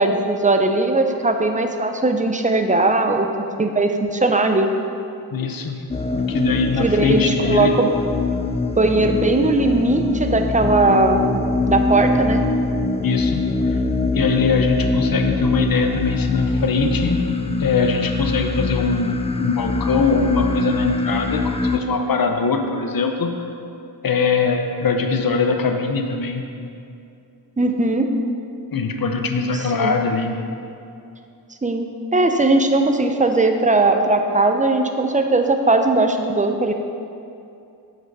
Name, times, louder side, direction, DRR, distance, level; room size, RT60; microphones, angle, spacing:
voice 1, 0.0-3.3 3.6-4.7 6.8-7.9 8.8-11.4 11.7-12.4 27.6-28.1 29.5-30.0 31.6-31.9 32.1-36.7, right 2 dB, 20° right, 5 dB, 0.7 m, -19 dB
voice 2, 5.3-5.8 6.1-7.7 13.0-13.8 14.1-17.2 17.6-23.4 24.0-26.4 28.7-30.4, left 4 dB, 55° left, 4 dB, 0.8 m, -22 dB
sound 1, 5.9-21.8, left 3 dB, 15° left, 0.4 m, -23 dB
7.9 x 6.1 x 5.5 m, 2.6 s
wide cardioid pair, 60°, 41 cm